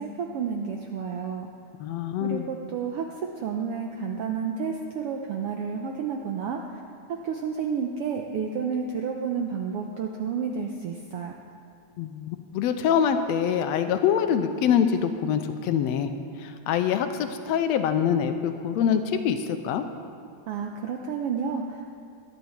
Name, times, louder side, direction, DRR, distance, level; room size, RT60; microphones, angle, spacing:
voice 1, 0.0-1.5 2.2-3.0 3.4-6.6 7.1-11.4 20.5-21.9, right 6 dB, 80° right, 2 dB, 1.3 m, -30 dB
voice 2, 1.8-2.5 12.0-16.1 16.4-19.8, left 8 dB, 75° left, 8 dB, 1.7 m, -25 dB
19.0 x 10.5 x 4.4 m, 2.4 s
omnidirectional pair, 3.5 m